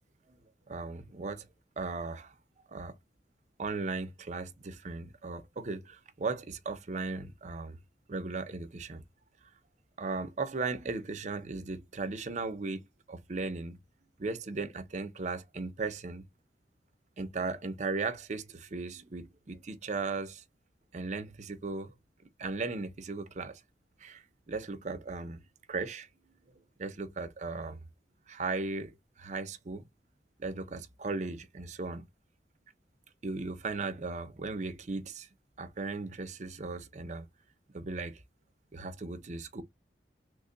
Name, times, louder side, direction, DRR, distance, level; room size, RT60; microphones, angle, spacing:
voice 1, 0.7-1.5 1.8-2.3 2.7-2.9 3.6-7.8 8.1-9.0 10.0-13.8 14.2-16.3 17.2-20.4 20.9-21.9 22.4-23.6 24.0-25.4 25.7-26.1 26.8-27.8 28.3-29.8 30.4-32.1 33.2-35.3 35.6-37.3 37.7-38.2 38.7-39.6, right 3 dB, 40° right, 0.5 m, -37 dB
3.3 x 2.2 x 3.7 m
head